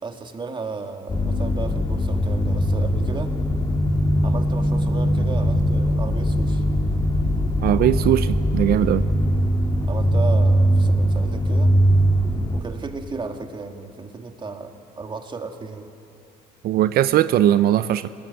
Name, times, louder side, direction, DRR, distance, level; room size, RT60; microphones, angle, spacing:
voice 1, 0.0-3.4 4.2-6.6 9.9-11.8 12.5-15.9, right 4 dB, 30° right, 5 dB, 2.0 m, -34 dB
sound 1, 1.1-12.6, equal, 25° left, 2.5 m, -21 dB
voice 2, 7.6-9.1 16.6-18.1, right 12 dB, 65° right, 12 dB, 0.7 m, -19 dB
26.5 x 20.0 x 9.3 m, 2.7 s
cardioid pair, 110°, 17 cm